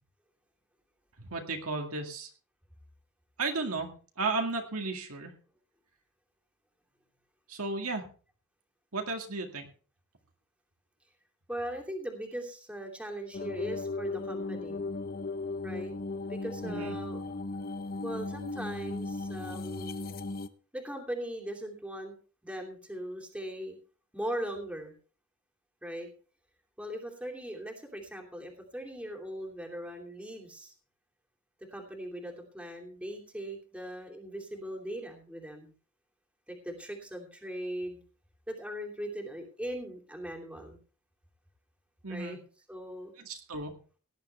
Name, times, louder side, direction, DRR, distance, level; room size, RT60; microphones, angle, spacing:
voice 1, 1.2-2.3 3.4-5.3 7.5-8.1 8.9-9.7 16.6-17.0 42.0-42.4 43.2-43.8, right 3 dB, 70° right, 3 dB, 2.2 m, -34 dB
voice 2, 11.5-14.8 15.6-15.9 16.3-17.2 18.0-20.1 20.7-22.1 22.4-23.8 24.1-24.9 25.8-26.1 26.8-30.7 31.7-35.7 36.5-38.0 38.5-40.8 42.1-42.4 42.7-43.1, right 1 dB, 5° right, 1 dB, 2.9 m, -39 dB
sound 1, 13.3-20.5, left 3 dB, 40° left, 0.7 m, -36 dB
17.5 x 11.0 x 3.4 m, 0.37 s
head